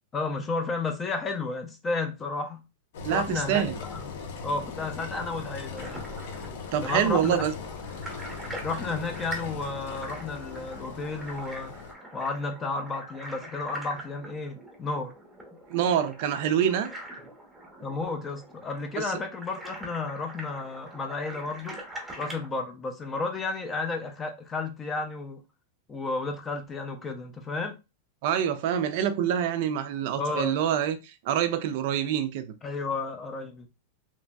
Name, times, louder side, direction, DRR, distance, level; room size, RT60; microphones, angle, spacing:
voice 1, 0.1-2.6 3.1-4.0 4.4-6.0 6.8-7.4 8.6-11.7 12.1-15.1 17.8-21.8 22.2-25.4 25.9-27.8 30.2-30.6 32.6-33.7, left 3 dB, 15° left, 0.4 m, -32 dB
Engine, 2.9-11.9, left 5 dB, 65° left, 0.7 m, -39 dB
voice 2, 3.0-3.8 6.7-7.5 15.7-16.9 19.0-19.1 28.2-32.5, right 9 dB, 50° right, 0.4 m, -26 dB
sound 1, 5.8-22.5, right 1 dB, 5° right, 0.8 m, -44 dB
2.9 x 2.6 x 2.2 m
supercardioid pair, 170°, 0 cm